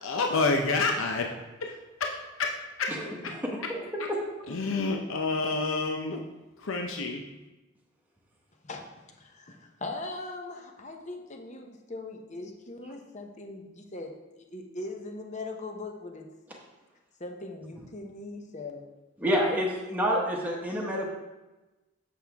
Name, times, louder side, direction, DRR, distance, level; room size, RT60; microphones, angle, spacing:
voice 1, 0.0-1.3 1.6-3.3 4.5-6.2 6.6-7.2, left 3 dB, 80° left, 2 dB, 0.7 m, -29 dB
voice 2, 3.4-3.8 4.1-4.2 19.2-21.1, equal, 10° right, -3 dB, 1.0 m, -28 dB
voice 3, 8.6-16.3 17.2-18.9 19.2-19.6, left 2 dB, 35° left, 3 dB, 0.8 m, -40 dB
7.8 x 6.2 x 3.5 m, 1.1 s
head